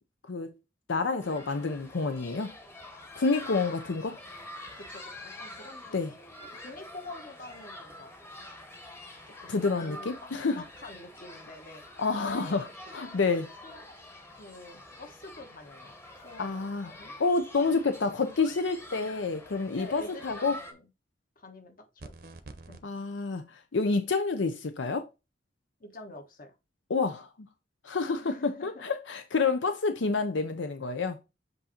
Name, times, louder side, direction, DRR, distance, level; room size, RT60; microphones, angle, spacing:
voice 1, 0.9-2.5 3.2-4.1 5.9-6.1 9.5-10.6 12.0-12.7 12.9-13.5 16.4-16.9 17.2-20.6 22.8-25.0 26.9-27.3 27.8-31.2, left 4 dB, 90° left, 0.7 m, -28 dB
sound 1, 1.2-20.7, left 1 dB, 15° left, 1.0 m, -47 dB
voice 2, 3.6-4.2 4.7-8.1 9.3-10.1 10.6-11.8 12.1-13.0 13.6-13.8 14.4-16.7 17.0-17.2 18.9-19.1 19.7-20.9 21.4-22.9 25.8-26.5 28.2-28.8, left 2 dB, 50° left, 1.2 m, -47 dB
sound 2, 22.0-22.8, right 2 dB, 55° right, 0.7 m, -46 dB
7.9 x 2.7 x 4.3 m
head